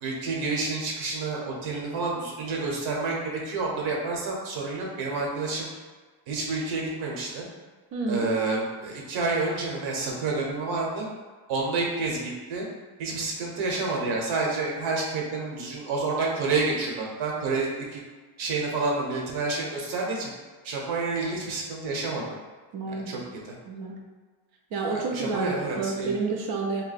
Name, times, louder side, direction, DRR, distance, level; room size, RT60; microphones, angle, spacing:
voice 1, 0.0-5.7 6.3-7.5 8.1-11.1 11.5-12.7 13.0-18.0 18.4-20.3 20.6-22.3 22.9-23.5 24.9-26.1, right 3 dB, 80° right, -2 dB, 1.0 m, -29 dB
voice 2, 7.9-8.3 22.7-23.3 23.7-24.0 24.7-26.8, right 4 dB, 50° right, 0 dB, 0.6 m, -30 dB
2.8 x 2.2 x 4.1 m, 1.4 s
cardioid pair, 175°, 46 cm